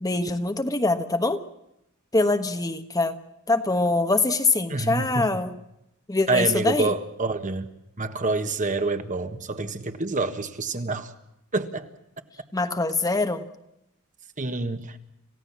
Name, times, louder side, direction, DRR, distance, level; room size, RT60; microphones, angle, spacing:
voice 1, 0.0-1.4 2.1-3.2 3.5-5.5 6.1-6.9 12.5-13.5, left 2 dB, 15° left, 1.2 m, -24 dB
voice 2, 4.7-5.3 6.3-7.7 8.0-11.1 11.5-11.9 14.4-15.0, right 3 dB, 35° right, 1.6 m, -27 dB
28.0 x 16.0 x 7.4 m
head